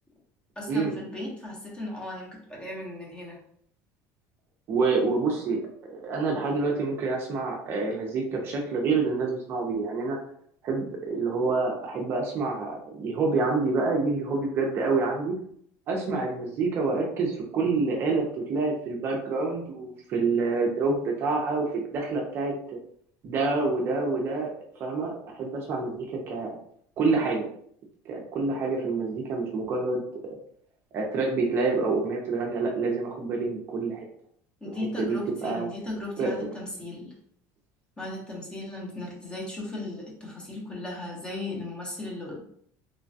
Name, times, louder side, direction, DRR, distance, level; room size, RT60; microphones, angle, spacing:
voice 1, 0.6-3.4 34.6-37.1 38.0-42.4, left 2 dB, 15° left, -2 dB, 0.7 m, -36 dB
voice 2, 4.7-10.2 10.6-15.4 15.9-22.5 23.2-26.6 27.0-27.5 28.1-30.0 30.9-34.1 34.7-35.7 36.2-36.3, right 3 dB, 35° right, 0 dB, 0.5 m, -27 dB
3.0 x 2.2 x 2.6 m, 0.65 s
cardioid pair, 170°, 7 cm